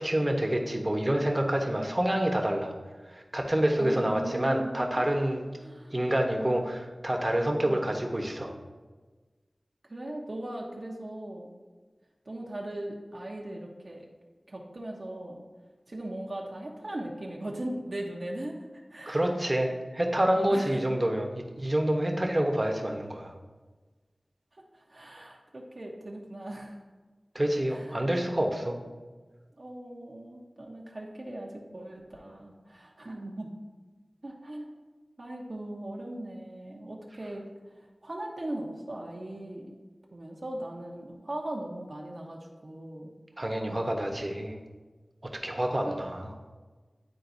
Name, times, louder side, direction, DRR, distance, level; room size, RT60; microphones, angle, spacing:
voice 1, 0.0-2.7 3.1-5.4 5.9-8.5 19.1-23.3 27.3-28.8 43.4-44.6 45.3-46.3, right 1 dB, 30° right, 2 dB, 1.0 m, -27 dB
voice 2, 3.8-5.1 5.6-5.9 7.6-7.9 9.8-11.5 12.2-14.1 14.5-15.4 15.9-19.3 20.5-20.9 24.5-26.8 27.7-28.0 29.6-33.6 34.2-34.7 35.2-37.7 38.0-39.7 40.1-43.1 45.8-46.0, right 1 dB, 60° right, -2 dB, 0.9 m, -39 dB
10.5 x 3.9 x 2.7 m, 1.3 s
wide cardioid pair, 45°, 0 cm